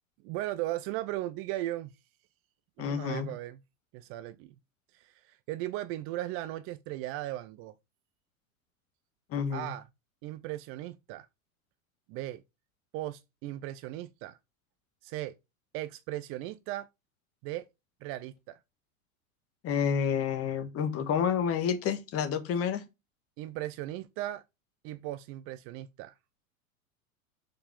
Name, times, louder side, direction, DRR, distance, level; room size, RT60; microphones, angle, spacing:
voice 1, 0.2-1.9 2.8-3.6 3.9-4.5 4.9-7.7 9.5-9.8 10.2-11.3 12.1-12.4 12.9-14.4 15.0-15.3 15.7-16.9 17.4-17.6 18.0-18.6 23.4-24.4 24.8-26.1, right 15 dB, 30° right, 0.5 m, -37 dB
voice 2, 2.8-3.3 9.3-9.7 19.6-22.8, left 7 dB, 30° left, 1.7 m, -29 dB
6.7 x 5.7 x 5.2 m
figure-of-eight pair, 95°, 42 cm